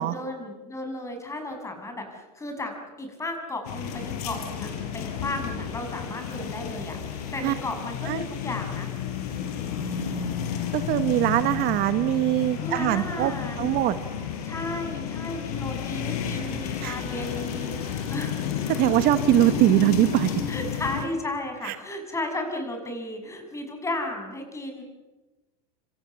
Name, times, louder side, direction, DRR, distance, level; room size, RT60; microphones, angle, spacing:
voice 1, 0.1-2.7 3.0-8.9 12.6-13.7 14.4-18.5 20.5-24.8, left 2 dB, 15° left, 5 dB, 6.9 m, -34 dB
sound 1, 3.6-21.1, left 8 dB, 70° left, 5.3 m, -31 dB
voice 2, 10.7-13.3 13.6-14.0 16.8-17.0 18.7-20.3 21.6-21.7, right 15 dB, 50° right, 11 dB, 1.3 m, -22 dB
27.0 x 26.0 x 7.2 m, 1.2 s
supercardioid pair, 120°, 20 cm